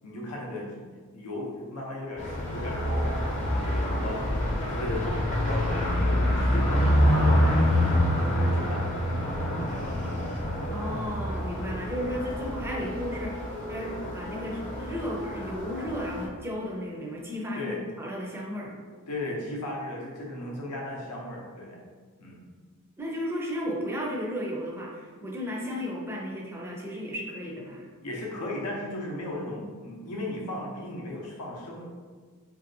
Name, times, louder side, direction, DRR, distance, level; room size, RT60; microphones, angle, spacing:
voice 1, 0.0-4.4 4.7-5.2 5.4-7.7 8.2-8.8 9.4-9.6 17.6-17.8 19.1-21.8 22.2-22.5 28.0-31.8, left 1 dB, 85° left, -2 dB, 0.6 m, -36 dB
sound 1, 2.2-16.3, equal, 35° left, 0.6 m, -27 dB
voice 2, 10.7-18.7 23.0-27.9, equal, 10° right, -2 dB, 0.4 m, -34 dB
2.9 x 2.6 x 2.6 m, 1.5 s
head